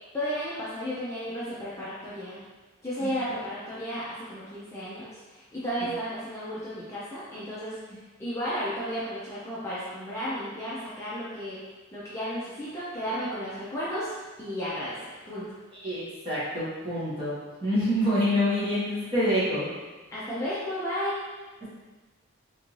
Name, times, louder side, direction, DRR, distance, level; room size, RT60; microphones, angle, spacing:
voice 1, 0.1-2.4 2.8-11.6 11.9-15.5 20.1-21.2, equal, 15° left, -10 dB, 0.5 m, -33 dB
voice 2, 15.8-19.7, equal, 25° right, -10 dB, 1.2 m, -26 dB
3.4 x 2.6 x 3.0 m, 1.3 s
head